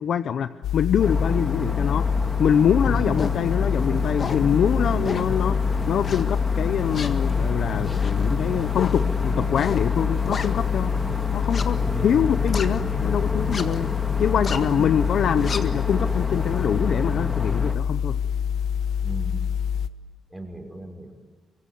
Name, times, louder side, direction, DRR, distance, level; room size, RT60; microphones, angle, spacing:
voice 1, 0.0-2.1 2.4-10.9 11.3-13.9 14.2-18.2, left 8 dB, 65° left, 11 dB, 0.8 m, -24 dB
sound 1, 0.6-19.9, left 8 dB, 85° left, 1.0 m, -26 dB
sound 2, 1.0-17.8, left 1 dB, 15° left, 2.2 m, -30 dB
voice 2, 2.8-3.2 4.9-5.1 11.7-12.2 14.7-14.8 19.0-19.4 20.3-21.1, right 2 dB, 5° right, 3 dB, 5.5 m, -35 dB
sound 3, 3.2-3.4 3.9-4.5 5.0-5.4 6.0-6.5 6.9-10.9 11.4-13.1 13.4-13.9 14.2-14.7 15.1-16.6, left 5 dB, 40° left, 1.7 m, -34 dB
25.0 x 24.5 x 9.5 m, 1.4 s
cardioid pair, 130°, 0 cm